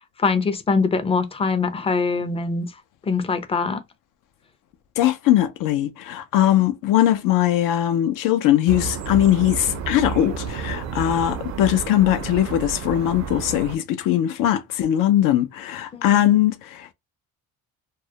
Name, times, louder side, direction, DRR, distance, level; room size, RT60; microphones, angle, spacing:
voice 1, 0.2-2.7 3.1-3.8 15.9-16.2, left 4 dB, 20° left, 0.4 m, -23 dB
voice 2, 5.0-16.9, left 12 dB, 70° left, 0.5 m, -20 dB
sound 1, 8.7-13.8, right 6 dB, 50° right, 0.5 m, -31 dB
2.3 x 2.0 x 2.7 m
cardioid pair, 110°, 34 cm